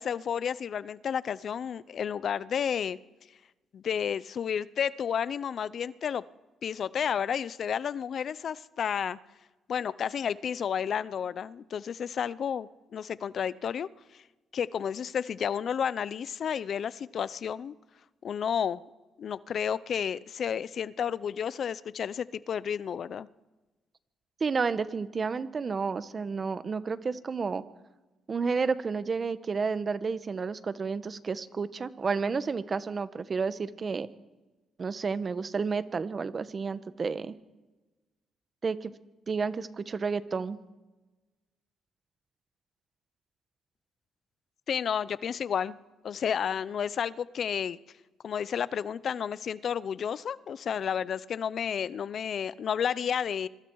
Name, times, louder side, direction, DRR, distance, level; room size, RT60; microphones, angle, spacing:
voice 1, 0.0-3.0 3.7-6.2 6.6-9.2 9.7-13.9 14.5-17.7 18.2-18.8 19.2-23.3 44.7-45.8 46.0-47.8 48.2-53.5, left 8 dB, 55° left, 18 dB, 0.7 m, -31 dB
voice 2, 24.4-27.6 28.3-34.1 34.8-37.3 38.6-38.9 39.3-40.6, right 5 dB, 40° right, 13 dB, 1.2 m, -31 dB
26.0 x 23.0 x 4.8 m, 1.1 s
cardioid pair, 90°, 0 cm